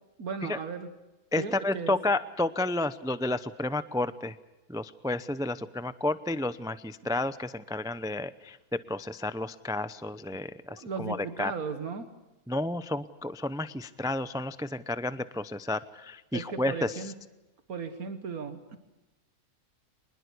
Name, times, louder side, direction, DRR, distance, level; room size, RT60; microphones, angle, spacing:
voice 1, 0.2-0.9 1.4-2.0 10.7-12.1 16.3-17.1 17.7-18.8, right 5 dB, 80° right, 9 dB, 1.9 m, -36 dB
voice 2, 1.3-4.4 4.7-11.5 12.5-17.0, left 2 dB, 5° right, 13 dB, 0.4 m, -31 dB
25.0 x 20.5 x 8.3 m, 1.0 s
omnidirectional pair, 1.5 m